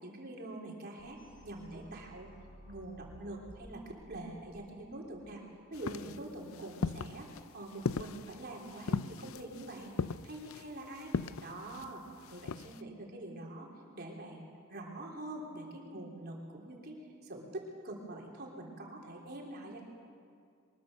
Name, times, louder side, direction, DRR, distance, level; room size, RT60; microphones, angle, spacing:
voice 1, 0.0-2.3 2.6-5.4 5.7-10.0 10.2-11.1 11.4-12.0 12.3-13.7 13.9-19.8, right 1 dB, 50° right, -1 dB, 3.6 m, -45 dB
sound 1, 1.0-5.9, equal, 45° left, 7.0 m, -56 dB
sound 2, 5.7-12.8, left 4 dB, 70° left, 0.5 m, -39 dB
23.5 x 21.5 x 6.7 m, 2.3 s
head